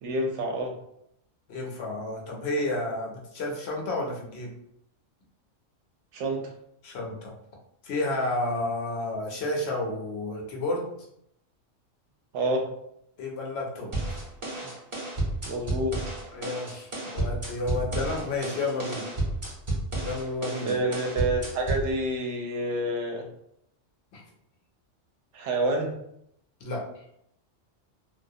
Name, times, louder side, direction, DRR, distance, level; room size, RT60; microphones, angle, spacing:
voice 1, 0.0-0.7 6.1-6.4 12.3-12.7 15.5-15.9 20.6-23.3 25.3-25.9, right 1 dB, 70° right, 1 dB, 0.8 m, -28 dB
voice 2, 1.5-4.5 6.8-7.3 7.8-10.9 13.2-14.2 16.3-19.1 20.0-20.8 24.1-24.2 26.6-26.9, left 2 dB, 65° left, -1 dB, 0.8 m, -31 dB
sound 1, 13.9-21.9, right 2 dB, 35° right, 0.6 m, -31 dB
2.3 x 2.0 x 2.6 m, 0.75 s
omnidirectional pair, 1.3 m